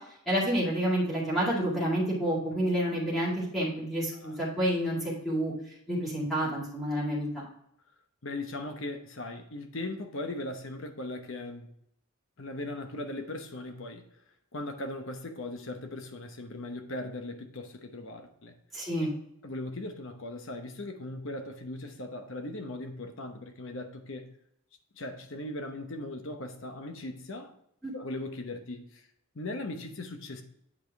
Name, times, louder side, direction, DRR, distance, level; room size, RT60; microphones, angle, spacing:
voice 1, 0.3-5.5 5.9-7.4 18.7-19.1 27.8-27.9, right 1 dB, ahead, 2.1 m, -29 dB
voice 2, 8.2-11.7 12.4-14.0 14.5-18.5 19.4-24.3 24.9-27.5 27.9-29.0 29.3-30.4, left 2 dB, 60° left, 0.9 m, -38 dB
8.6 x 5.0 x 3.5 m
head